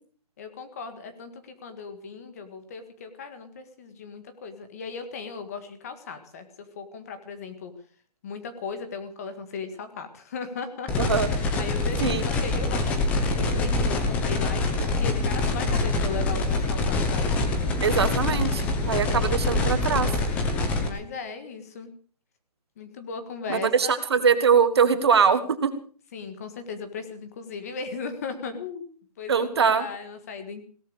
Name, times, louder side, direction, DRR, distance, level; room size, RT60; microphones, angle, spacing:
voice 1, 0.4-7.7 8.2-17.3 18.9-19.8 20.9-21.9 22.8-23.9 26.1-28.9 29.2-30.6, left 5 dB, 25° left, 9 dB, 1.7 m, -37 dB
sound 1, 10.9-20.9, left 3 dB, 5° left, 1.0 m, -25 dB
voice 2, 11.0-11.3 12.0-12.2 17.8-20.1 23.5-25.7 29.3-29.8, right 6 dB, 40° right, 11 dB, 1.7 m, -22 dB
17.5 x 12.5 x 6.4 m, 0.43 s
hypercardioid pair, 175°, 20 cm